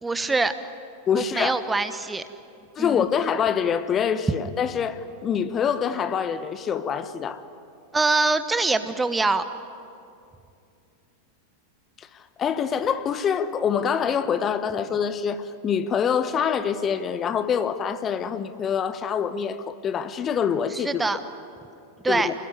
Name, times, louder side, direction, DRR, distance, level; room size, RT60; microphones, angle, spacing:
voice 1, 0.0-0.5 1.2-2.2 2.8-3.0 7.9-9.4 20.8-21.2 22.0-22.3, right 3 dB, 10° right, 1.2 m, -23 dB
voice 2, 1.1-1.6 2.8-7.4 12.0-21.0 22.1-22.3, left 7 dB, 25° left, 1.2 m, -25 dB
29.0 x 19.5 x 9.9 m
figure-of-eight pair, 90°, 0 cm